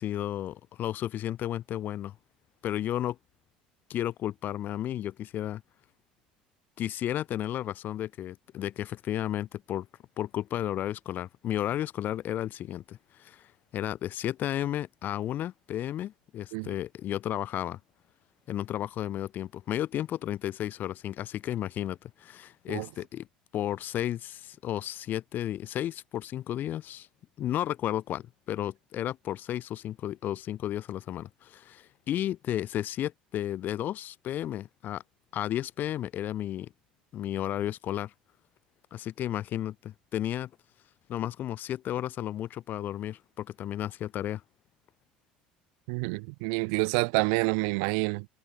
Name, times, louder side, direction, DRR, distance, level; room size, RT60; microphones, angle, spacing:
voice 1, 0.0-2.1 2.6-3.2 3.9-5.6 6.8-9.9 10.2-13.4 13.7-17.8 18.5-23.3 23.5-27.1 27.4-35.0 35.3-36.7 37.1-38.1 38.9-40.5 41.1-44.4, left 12 dB, 50° left, 0.7 m, -33 dB
voice 2, 45.9-48.3, right 39 dB, 65° right, 0.5 m, -28 dB
hypercardioid pair, 70°, 4 cm